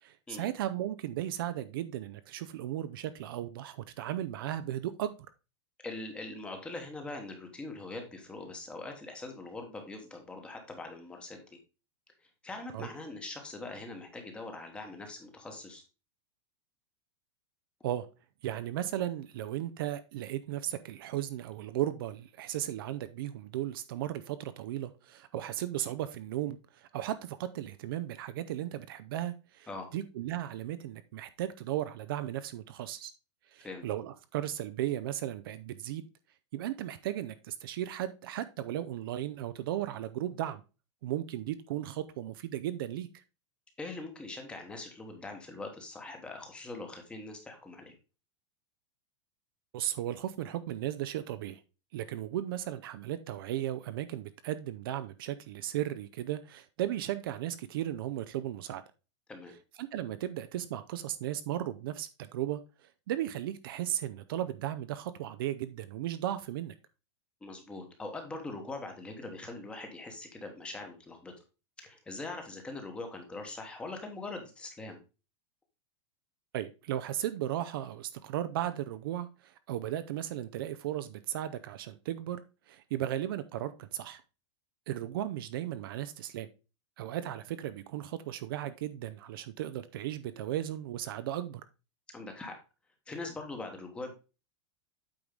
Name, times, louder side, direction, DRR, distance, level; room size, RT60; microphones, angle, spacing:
voice 1, 0.0-5.1 12.7-12.9 17.8-18.1 18.4-33.1 33.5-36.0 36.5-40.6 41.0-43.1 49.7-51.6 51.9-58.8 59.8-66.7 76.5-82.4 82.7-84.2 84.9-86.5 87.0-91.6, right 12 dB, 50° right, 0.5 m, -36 dB
voice 2, 5.8-11.4 12.4-15.8 29.7-29.9 33.6-33.8 43.8-47.9 59.3-59.5 67.4-71.3 71.8-75.0 92.1-92.5 93.1-94.1, left 2 dB, 5° left, 1.1 m, -42 dB
8.5 x 4.7 x 3.7 m
supercardioid pair, 175°, 15 cm